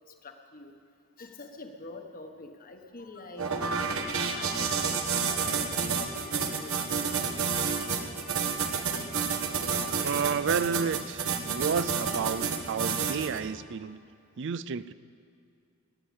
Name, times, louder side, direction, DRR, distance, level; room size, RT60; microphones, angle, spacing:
voice 1, 0.2-0.7 1.2-6.9 7.6-10.1 10.5-10.6, left 3 dB, 45° left, 5 dB, 1.3 m, -46 dB
sound 1, 3.4-13.4, right 5 dB, 75° right, 1.4 m, -30 dB
voice 2, 10.0-14.0 14.4-14.9, right 6 dB, 60° right, 17 dB, 0.4 m, -31 dB
20.0 x 7.8 x 8.4 m, 2.5 s
head